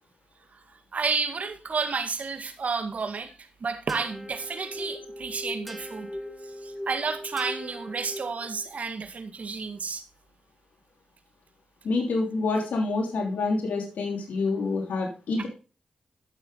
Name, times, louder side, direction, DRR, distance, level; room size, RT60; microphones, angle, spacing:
voice 1, 0.9-6.1 6.4-10.0 15.4-15.5, right 4 dB, 60° right, 2.0 m, -31 dB
sound 1, 3.9-8.7, left 1 dB, ahead, 2.7 m, -39 dB
voice 2, 11.8-15.5, left 3 dB, 80° left, 3.1 m, -27 dB
13.0 x 6.8 x 4.0 m
cardioid pair, 45°, 3 cm